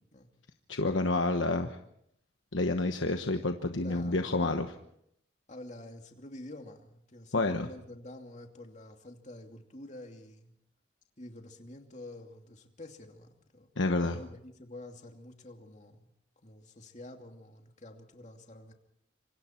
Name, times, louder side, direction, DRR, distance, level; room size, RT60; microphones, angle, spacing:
voice 1, 0.7-1.8 2.5-4.7 7.3-7.7 13.8-14.2, left 2 dB, 90° left, 6 dB, 1.2 m, -29 dB
voice 2, 3.8-4.2 5.5-10.5 11.2-13.7 14.1-16.1 16.4-18.7, left 1 dB, 40° left, 4 dB, 2.6 m, -48 dB
26.5 x 25.5 x 4.5 m, 0.73 s
head